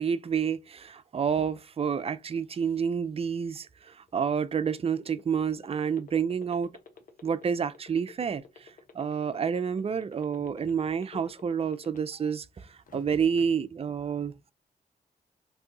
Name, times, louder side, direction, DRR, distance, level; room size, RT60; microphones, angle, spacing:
voice 1, 0.0-6.7 7.2-8.7 8.9-14.3, right 7 dB, 35° right, 0.4 m, -29 dB
sound 1, 4.1-12.3 12.7-13.4, left 5 dB, 55° left, 0.9 m, -50 dB
2.7 x 2.3 x 3.9 m
cardioid pair, 60°, 17 cm